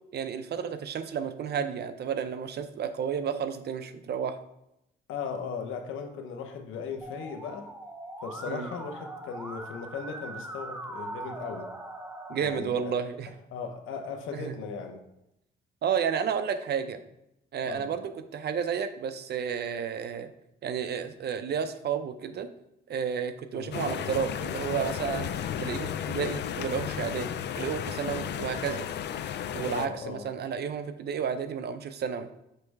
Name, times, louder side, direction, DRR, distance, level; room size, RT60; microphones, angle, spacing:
voice 1, 0.1-4.4 8.5-8.7 12.3-13.3 14.3-14.5 15.8-17.0 17.5-20.3 20.6-22.5 22.9-25.3 25.6-28.8 29.5-32.3, right 7 dB, 55° right, 10 dB, 0.6 m, -31 dB
voice 2, 5.1-7.7 8.2-11.7 12.4-12.9 13.5-15.0 17.7-17.9 23.5-23.7 29.7-30.3, left 6 dB, 85° left, 5 dB, 0.9 m, -37 dB
Musical instrument, 7.0-12.6, right 1 dB, 10° right, 0.7 m, -41 dB
sound 1, 23.7-29.9, left 9 dB, 60° left, 0.4 m, -33 dB
6.7 x 3.2 x 4.6 m, 0.85 s
cardioid pair, 90°, 20 cm